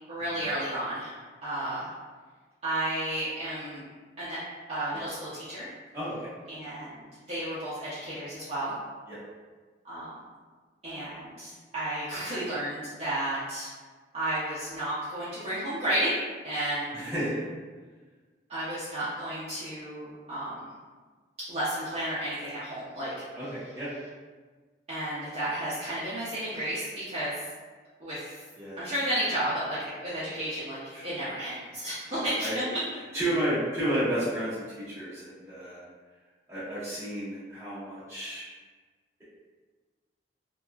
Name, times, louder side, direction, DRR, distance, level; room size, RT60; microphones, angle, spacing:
voice 1, 0.1-1.9 2.6-3.8 4.2-4.4 4.7-5.7 6.5-8.7 9.8-10.1 10.8-13.7 14.1-16.2 16.4-17.0 18.5-20.6 21.5-23.1 24.9-27.3 28.0-28.4 28.8-32.6, right 1 dB, 35° right, -13 dB, 0.6 m, -32 dB
voice 2, 5.9-6.3 9.1-9.2 16.9-17.5 23.4-23.9 28.6-28.8 30.9-31.0 32.1-32.6 33.1-35.8 36.5-38.4, right 1 dB, 15° right, -12 dB, 1.0 m, -32 dB
2.8 x 2.2 x 2.3 m, 1.4 s
head